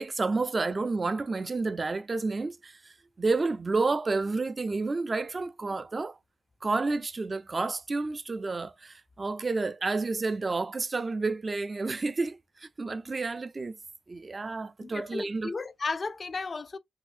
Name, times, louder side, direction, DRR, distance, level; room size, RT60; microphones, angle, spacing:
voice 1, 0.0-6.2 6.6-13.8 14.1-15.5, right 3 dB, 40° right, 0.3 m, -30 dB
voice 2, 14.8-16.8, left 4 dB, 45° left, 0.4 m, -34 dB
3.7 x 2.6 x 2.4 m
cardioid pair, 55°, 0 cm